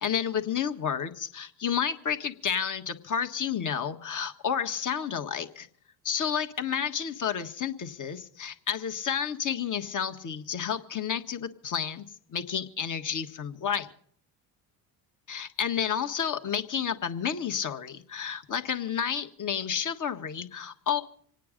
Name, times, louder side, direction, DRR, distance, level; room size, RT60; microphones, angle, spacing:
voice 1, 0.0-5.7 6.0-12.0 12.3-13.9 15.3-21.0, left 8 dB, 40° left, 6 dB, 1.6 m, -31 dB
26.5 x 9.3 x 5.1 m, 0.63 s
hypercardioid pair, 70°, 49 cm